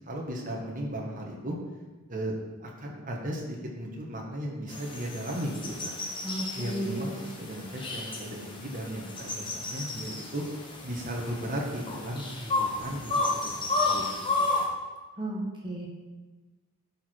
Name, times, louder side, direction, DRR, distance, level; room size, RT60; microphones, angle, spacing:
voice 1, 0.1-1.6 2.1-2.3 2.6-5.9 6.5-10.4 10.8-14.5, right 1 dB, 35° right, -1 dB, 1.5 m, -36 dB
sound 1, 4.7-14.6, left 3 dB, 20° left, 1.1 m, -32 dB
voice 2, 6.2-7.2 15.2-15.9, right 1 dB, 20° right, -2 dB, 1.2 m, -34 dB
11.5 x 4.8 x 4.6 m, 1.2 s
head